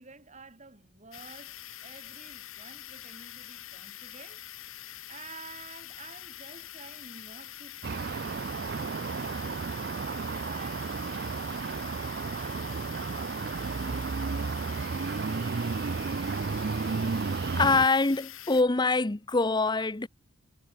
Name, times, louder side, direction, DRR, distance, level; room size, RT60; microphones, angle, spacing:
voice 1, 0.0-1.5 1.8-4.4 5.1-8.6 9.9-15.0, right 4 dB, 35° right, 3.3 m, -51 dB
sound 1, 1.1-18.6, left 12 dB, 80° left, 2.5 m, -45 dB
sound 2, 7.8-17.9, right 4 dB, 50° right, 0.5 m, -32 dB
voice 2, 17.6-20.1, left 3 dB, 20° left, 0.7 m, -24 dB
head